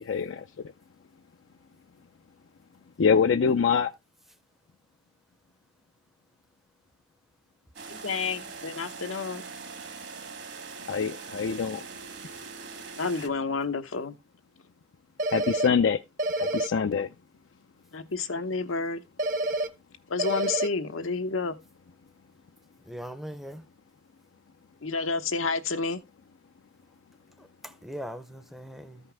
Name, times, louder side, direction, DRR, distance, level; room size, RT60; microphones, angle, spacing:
voice 1, 3.0-3.9 10.9-11.8 15.3-16.0 16.5-17.1, left 6 dB, 70° left, 0.4 m, -24 dB
sound 1, 7.7-13.3, right 4 dB, 60° right, 1.4 m, -42 dB
voice 2, 7.9-9.4 13.0-14.1 17.9-19.0 20.1-21.5 24.8-26.0, left 4 dB, 90° left, 0.9 m, -30 dB
sound 2, 15.2-15.7 16.2-16.7 19.2-19.7 20.2-20.7, right 2 dB, 45° right, 0.8 m, -27 dB
voice 3, 22.9-23.6 27.4-29.1, equal, ahead, 0.6 m, -40 dB
13.5 x 5.5 x 3.4 m
head